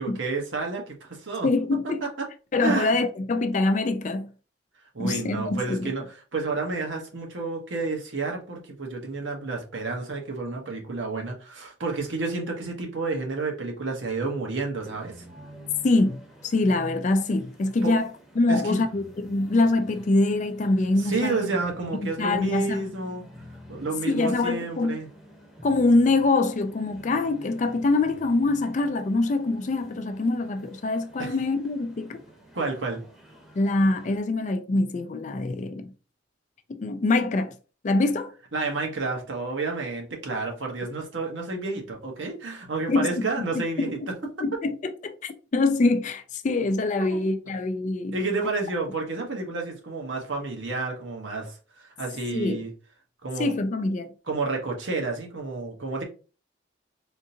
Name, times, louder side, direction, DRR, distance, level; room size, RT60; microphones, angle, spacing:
voice 1, 0.0-1.5 2.0-2.3 2.6-3.0 4.9-15.1 17.8-18.0 18.5-18.8 21.0-23.2 23.7-25.1 31.2-31.3 32.5-33.0 38.5-44.1 47.0-47.2 48.1-52.7 53.2-53.6 54.3-56.0, right 3 dB, 80° right, 1.0 m, -30 dB
voice 2, 1.4-2.0 2.5-4.3 5.0-5.9 15.8-18.1 18.4-21.5 21.9-22.8 24.0-25.0 25.6-32.2 33.6-35.9 36.8-37.5 37.8-38.3 42.9-43.1 43.8-43.9 44.4-44.8 45.0-48.2 52.3-52.6 53.4-54.1, left 2 dB, 40° left, 0.3 m, -24 dB
sound 1, 14.8-34.2, equal, ahead, 0.8 m, -49 dB
3.6 x 2.7 x 2.7 m
head